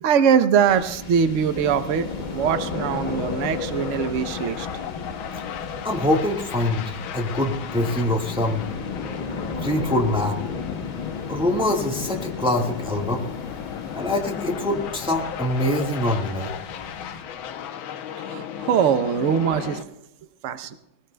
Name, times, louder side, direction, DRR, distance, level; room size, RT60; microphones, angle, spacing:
voice 1, 0.0-4.7 18.2-19.9 20.4-20.8, right 7 dB, 65° right, 10 dB, 0.7 m, -22 dB
sound 1, 0.7-17.6, left 3 dB, 40° left, 0.6 m, -35 dB
sound 2, 1.5-19.8, left 9 dB, 80° left, 1.6 m, -35 dB
voice 2, 5.8-8.6 9.6-10.4 11.3-13.2 13.9-16.6, left 1 dB, 5° right, 0 dB, 1.2 m, -24 dB
21.0 x 19.5 x 2.2 m, 0.93 s
omnidirectional pair, 2.3 m